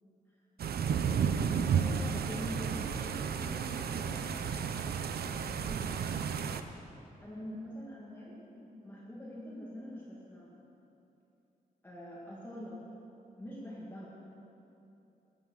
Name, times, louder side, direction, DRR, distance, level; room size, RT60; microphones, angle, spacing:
sound 1, 0.6-6.6, right 7 dB, 80° right, 0.7 m, -32 dB
voice 1, 1.0-6.2 7.2-10.6 11.8-12.8 13.4-14.1, equal, 15° left, -7 dB, 2.1 m, -45 dB
15.5 x 10.5 x 6.6 m, 2.9 s
wide cardioid pair, 160°, 16 cm